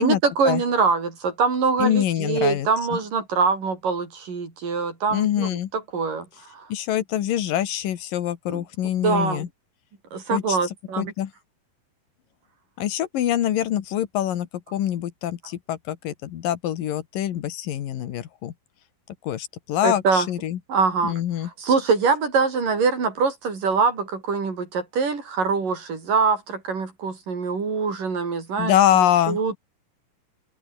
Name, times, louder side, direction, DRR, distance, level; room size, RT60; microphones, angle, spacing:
voice 1, 0.0-6.7 8.5-8.6 9.0-9.5 10.1-11.1 19.8-20.3 20.7-21.2 21.6-29.6, right 5 dB, 70° right, 6.9 m, -24 dB
voice 2, 1.8-2.7 5.1-5.7 6.7-9.5 10.3-10.6 11.0-11.3 12.8-18.5 19.2-20.6 21.0-21.5 28.6-29.4, left 11 dB, 75° left, 3.2 m, -24 dB
open air
omnidirectional pair, 3.9 m